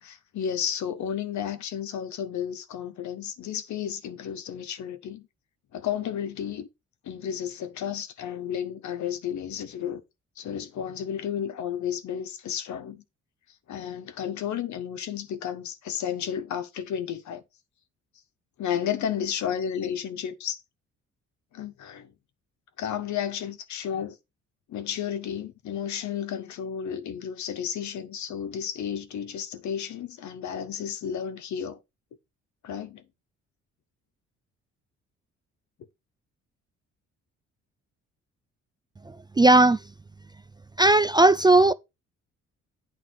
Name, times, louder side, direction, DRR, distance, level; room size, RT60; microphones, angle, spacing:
voice 1, 0.0-5.3 5.7-6.7 7.0-10.0 10.4-13.0 13.7-17.4 18.6-20.6 21.5-22.1 22.8-24.2 24.7-31.8 32.6-33.0, left 9 dB, 70° left, 1.2 m, -32 dB
voice 2, 39.1-39.8 40.8-41.7, right 2 dB, 15° right, 0.3 m, -17 dB
9.2 x 3.6 x 6.1 m
cardioid pair, 90°, 30 cm